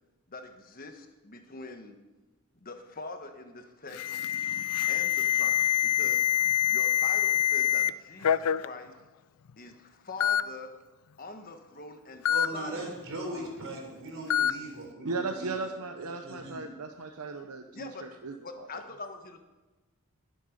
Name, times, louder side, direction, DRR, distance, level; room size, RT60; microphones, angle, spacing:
voice 1, 0.3-2.0 2.5-4.3 4.9-6.3 6.7-9.0 9.6-10.7 11.2-13.0 13.3-13.5 17.7-18.1 18.4-19.4, left 3 dB, 40° left, 6 dB, 1.3 m, -44 dB
Alarm, 3.9-7.9 8.2-8.7 9.5-9.6 10.2-10.4 12.3-12.5 14.3-14.5, left 10 dB, 80° left, 0.4 m, -25 dB
voice 2, 12.3-15.5 16.0-16.6, right 2 dB, 60° right, 1 dB, 3.8 m, -39 dB
voice 3, 15.0-18.7, right 3 dB, 85° right, 6 dB, 0.8 m, -37 dB
20.5 x 7.7 x 5.2 m, 1.2 s
head